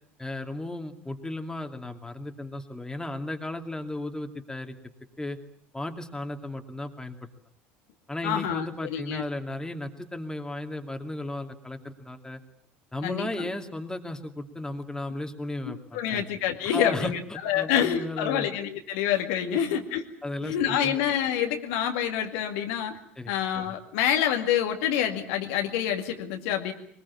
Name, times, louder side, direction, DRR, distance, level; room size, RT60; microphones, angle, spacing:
voice 1, 0.2-4.7 5.2-5.4 5.7-7.2 8.1-12.4 12.9-16.2 16.6-17.1 17.5-18.5 19.4-19.6 20.2-21.0 23.2-23.3, left 1 dB, 10° left, 5 dB, 2.6 m, -35 dB
voice 2, 8.2-9.2 13.0-13.5 15.9-20.0 20.4-22.9 23.3-26.7, left 10 dB, 65° left, 5 dB, 2.2 m, -27 dB
22.0 x 21.0 x 8.5 m, 0.66 s
hypercardioid pair, 65°, 7 cm